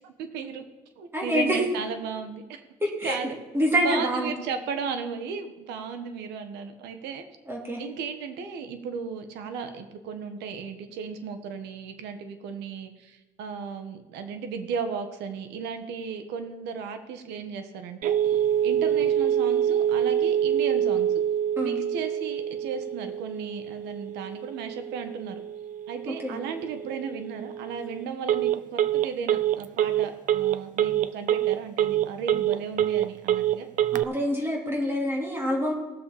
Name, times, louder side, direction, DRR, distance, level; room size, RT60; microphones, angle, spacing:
voice 1, 0.0-0.6 1.0-2.6 3.0-3.4 3.8-7.2 7.8-18.4 18.6-21.1 21.6-25.4 25.9-33.7, right 6 dB, 90° right, 7 dB, 1.4 m, -35 dB
voice 2, 1.1-1.6 2.8-4.3 7.5-7.8 21.6-21.8 26.1-26.4 33.9-35.7, equal, 15° right, -2 dB, 2.7 m, -26 dB
Telephone, 18.0-34.0, right 10 dB, 50° right, 0.5 m, -26 dB
18.5 x 7.2 x 4.2 m, 1.1 s
cardioid pair, 110°, 17 cm